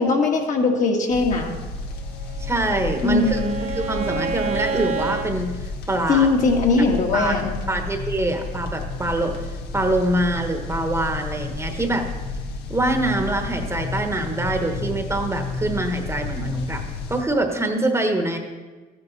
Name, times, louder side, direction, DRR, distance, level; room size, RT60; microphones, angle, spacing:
voice 1, 0.0-1.6 3.0-3.6 6.1-7.5, left 3 dB, 50° left, 1 dB, 1.8 m, -20 dB
sound 1, 1.1-17.2, left 4 dB, 75° left, 1.2 m, -31 dB
Bowed string instrument, 2.1-5.3, right 5 dB, 40° right, 1.0 m, -29 dB
voice 2, 2.4-3.4 3.7-6.3 6.7-6.8 7.1-7.4 7.7-12.1 12.7-16.8 17.1-18.4, right 2 dB, 15° right, 5 dB, 1.2 m, -24 dB
14.0 x 10.0 x 4.2 m, 1.3 s
cardioid pair, 110°, 17 cm